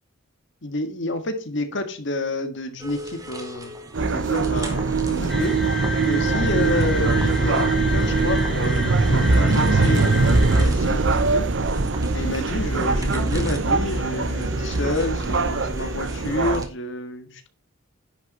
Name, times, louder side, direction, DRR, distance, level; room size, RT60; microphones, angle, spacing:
voice 1, 0.6-5.6 6.0-11.5 12.1-17.5, left 1 dB, 60° left, 7 dB, 1.7 m, -29 dB
sound 1, 2.8-16.7, equal, 15° right, 1.7 m, -37 dB
sound 2, 3.9-16.7, right 3 dB, 60° right, 0.8 m, -22 dB
sound 3, 5.3-10.6, left 2 dB, ahead, 2.9 m, -31 dB
10.5 x 6.4 x 4.3 m, 0.34 s
head